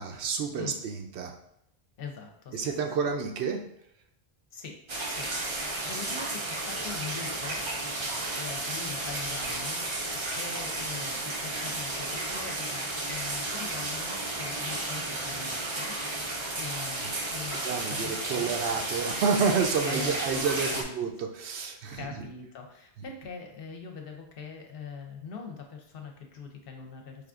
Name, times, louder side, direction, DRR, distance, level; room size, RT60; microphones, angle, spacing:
voice 1, 0.0-1.3 2.5-3.6 17.6-22.3, right 5 dB, 75° right, 4 dB, 0.8 m, -29 dB
voice 2, 2.0-2.5 4.6-4.7 5.9-6.3 6.7-7.6 8.4-9.8 10.4-11.2 11.6-11.9 12.3-15.0 15.3-15.9 16.6-18.5 19.9-21.0 22.0-22.6 23.0-25.5 25.9-27.0, left 5 dB, 65° left, 3 dB, 0.7 m, -41 dB
sound 1, 4.9-20.8, right 2 dB, 40° right, 0.4 m, -33 dB
4.9 x 2.4 x 2.4 m, 0.77 s
omnidirectional pair, 1.1 m